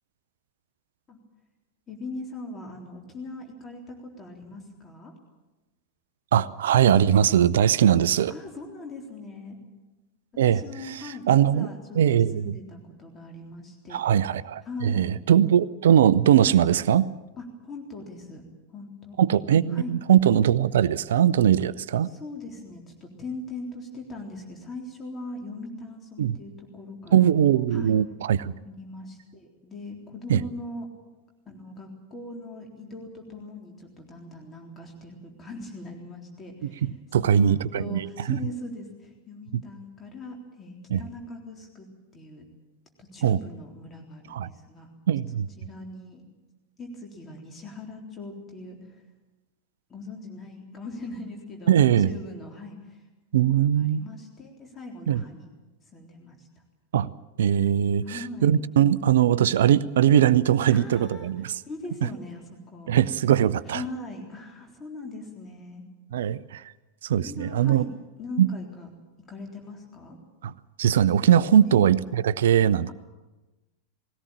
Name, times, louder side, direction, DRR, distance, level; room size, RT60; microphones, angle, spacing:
voice 1, 1.9-5.1 7.6-7.7 8.3-9.6 10.4-14.0 14.6-15.1 17.4-18.4 18.7-19.2 19.7-19.9 22.0-27.3 27.7-28.0 28.5-30.9 31.5-41.9 42.1-42.5 43.0-44.9 45.6-46.2 46.8-49.0 49.9-53.0 53.5-55.5 55.9-56.5 58.0-58.5 60.7-61.3 61.7-63.0 63.6-65.8 67.2-67.9 68.2-68.9 69.2-70.2 71.7-71.9, left 2 dB, 20° left, 1 dB, 3.8 m, -40 dB
voice 2, 6.3-8.3 10.4-11.7 12.0-12.6 13.9-17.1 19.2-22.1 26.2-26.4 27.1-28.5 30.3-30.4 36.6-38.4 40.9-41.0 43.2-43.4 44.3-44.5 45.1-45.5 51.7-52.1 53.3-54.1 55.1-55.2 56.9-57.1 57.4-61.5 62.9-63.8 66.1-66.6 67.0-67.8 68.4-68.5 70.4-70.5 70.8-72.9, right 9 dB, 60° right, 17 dB, 0.6 m, -21 dB
20.0 x 17.5 x 8.9 m, 1.1 s
figure-of-eight pair, 90°, 0 cm